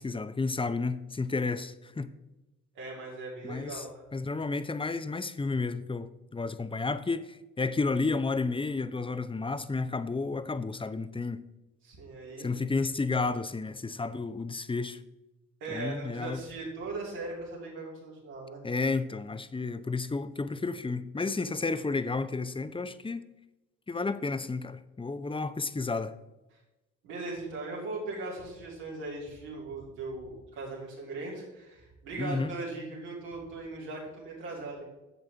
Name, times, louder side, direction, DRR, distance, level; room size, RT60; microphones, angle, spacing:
voice 1, 0.0-2.1 3.4-3.8 4.1-11.4 12.4-15.0 15.7-16.4 18.6-23.2 23.9-26.1 32.2-32.5, left 3 dB, 15° left, 0.6 m, -31 dB
voice 2, 2.7-4.0 11.8-12.5 15.6-18.6 27.0-34.8, right 2 dB, 85° right, 2.9 m, -39 dB
11.0 x 7.7 x 3.4 m
hypercardioid pair, 45°, 35 cm